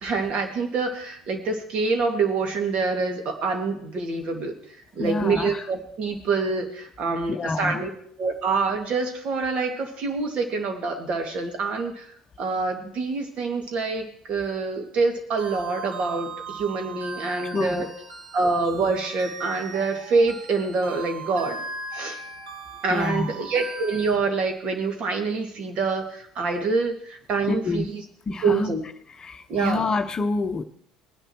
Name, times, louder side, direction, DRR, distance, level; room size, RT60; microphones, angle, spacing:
voice 1, 0.0-4.5 4.9-7.9 8.2-12.1 12.4-17.8 18.3-21.6 21.9-22.2 22.8-27.9 28.4-28.8 29.5-29.8, right 4 dB, 50° right, 4 dB, 2.2 m, -26 dB
voice 2, 5.0-5.7 7.3-7.8 17.4-17.9 22.9-23.3 27.5-27.9 28.3-28.7 29.1-30.6, left 3 dB, 30° left, 8 dB, 0.8 m, -27 dB
sound 1, 15.4-24.1, right 4 dB, 80° right, 1.7 m, -38 dB
19.5 x 10.0 x 3.1 m, 0.64 s
hypercardioid pair, 65°, 3 cm